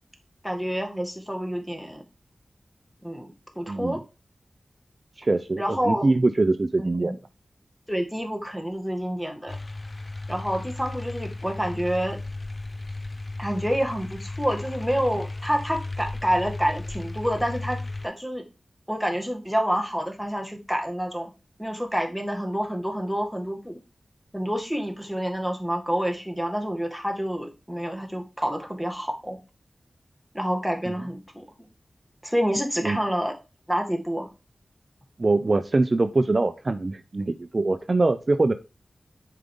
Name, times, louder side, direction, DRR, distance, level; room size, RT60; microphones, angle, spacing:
voice 1, 0.4-2.0 3.0-4.0 5.6-6.1 6.8-7.2 7.9-9.6 10.3-12.2 13.4-18.4 18.9-21.3 21.6-23.8 24.3-29.4 30.3-31.4 32.2-33.3 33.7-34.3, equal, 5° left, 3 dB, 1.9 m, -28 dB
voice 2, 3.7-4.0 5.2-7.2 30.9-31.0 32.8-33.0 35.2-38.5, right 2 dB, 50° right, 10 dB, 0.5 m, -23 dB
sound 1, 9.5-18.1, left 2 dB, 40° left, 0.7 m, -35 dB
7.5 x 5.0 x 3.7 m, 0.30 s
cardioid pair, 50°, 0 cm